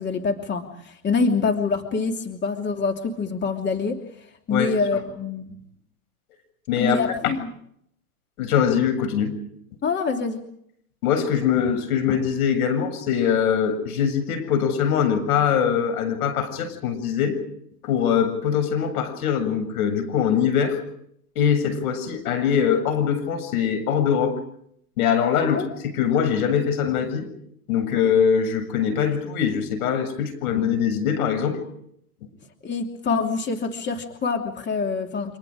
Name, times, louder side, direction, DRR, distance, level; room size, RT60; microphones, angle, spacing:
voice 1, 0.0-4.0 4.5-5.6 6.8-7.5 9.8-10.4 25.5-25.7 32.6-35.4, left 4 dB, 25° left, 4 dB, 3.0 m, -25 dB
voice 2, 6.7-7.3 8.4-9.3 11.0-17.4 17.8-20.8 21.4-24.4 25.0-27.3 27.7-31.6, left 8 dB, 75° left, 8 dB, 7.4 m, -22 dB
29.5 x 26.5 x 5.1 m, 0.71 s
hypercardioid pair, 115°, 44 cm